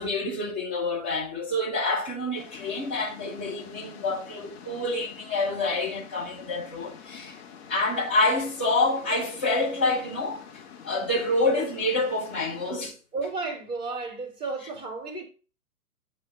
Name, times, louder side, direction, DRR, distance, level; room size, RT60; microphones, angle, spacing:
voice 1, 0.0-7.4 7.7-13.0, left 2 dB, 10° left, 0.4 m, -27 dB
sound 1, 2.4-12.7, left 7 dB, 45° left, 1.6 m, -47 dB
voice 2, 13.1-15.2, right 3 dB, 10° right, 1.9 m, -33 dB
9.0 x 3.1 x 5.7 m
figure-of-eight pair, 120°, 45 cm